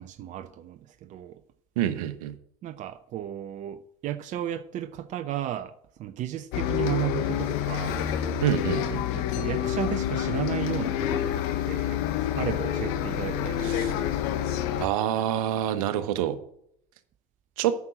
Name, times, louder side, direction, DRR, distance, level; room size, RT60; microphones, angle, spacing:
voice 1, 0.0-1.4 2.6-8.0 9.2-12.0 12.3-14.1, right 11 dB, 45° right, 0.7 m, -34 dB
voice 2, 1.8-2.3 8.4-9.2 13.6-13.9 14.8-16.4 17.6-17.7, right 11 dB, 70° right, 1.2 m, -27 dB
Bus, 6.5-14.9, left 10 dB, 60° left, 1.3 m, -28 dB
9.5 x 6.2 x 7.6 m
hypercardioid pair, 80°, 18 cm